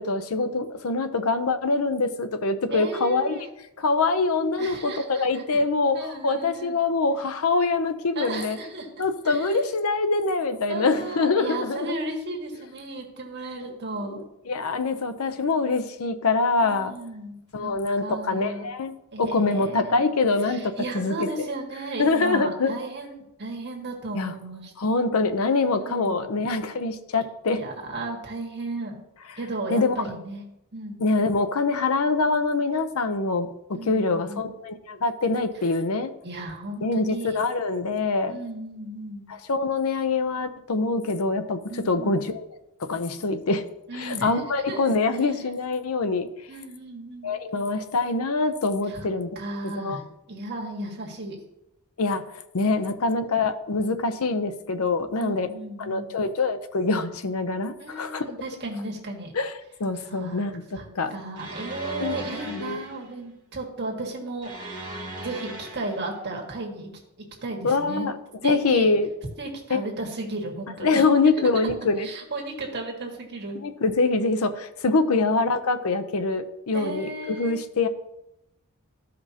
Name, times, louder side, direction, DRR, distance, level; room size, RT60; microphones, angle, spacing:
voice 1, 0.0-3.5 3.8-8.6 9.0-11.9 14.1-16.9 17.5-21.5 22.0-22.7 24.1-24.3 24.8-27.6 29.7-29.9 31.0-36.1 36.8-38.4 39.3-42.4 42.8-43.6 43.9-46.3 47.2-50.0 52.0-52.2 52.5-55.5 55.8-58.3 59.3-59.5 59.8-61.1 62.0-62.8 67.6-68.1 68.4-69.1 69.7-69.8 70.8-72.1 73.6-77.9, left 3 dB, 75° left, 10 dB, 0.6 m, -24 dB
voice 2, 2.7-3.4 4.6-5.4 5.9-6.8 8.1-8.9 9.3-9.5 10.7-14.2 16.6-17.7 18.0-18.7 19.1-20.0 20.5-24.7 25.7-26.2 27.5-29.0 29.4-30.4 30.7-31.0 33.7-34.5 36.2-37.4 38.3-39.3 41.7-42.2 43.9-44.9 46.5-47.3 48.9-49.1 49.4-50.0 50.3-51.4 52.8-52.9 55.2-56.1 57.8-59.3 60.0-60.5 60.7-64.9 65.2-66.9 67.4-68.1 68.4-68.9 69.4-71.0 72.0-73.6 74.9-75.2 76.7-77.6, right 2 dB, 50° right, 0 dB, 1.7 m, -35 dB
sound 1, 61.4-63.1 64.4-66.2, right 1 dB, 25° right, 2.2 m, -38 dB
14.0 x 5.1 x 2.8 m, 0.85 s
head